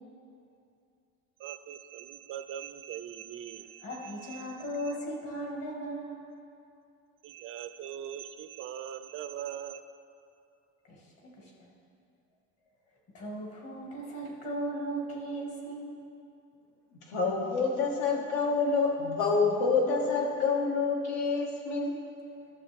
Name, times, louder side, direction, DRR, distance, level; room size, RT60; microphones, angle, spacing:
voice 1, 1.4-4.6 4.9-5.0 7.2-9.8, right 10 dB, 45° right, 10 dB, 0.5 m, -41 dB
voice 2, 3.8-6.2 10.8-11.7 13.1-16.0, right 1 dB, 50° left, -2 dB, 2.1 m, -37 dB
voice 3, 16.9-22.0, left 4 dB, 75° left, -1 dB, 1.8 m, -27 dB
13.5 x 6.7 x 3.6 m, 2.5 s
cardioid pair, 160°, 30 cm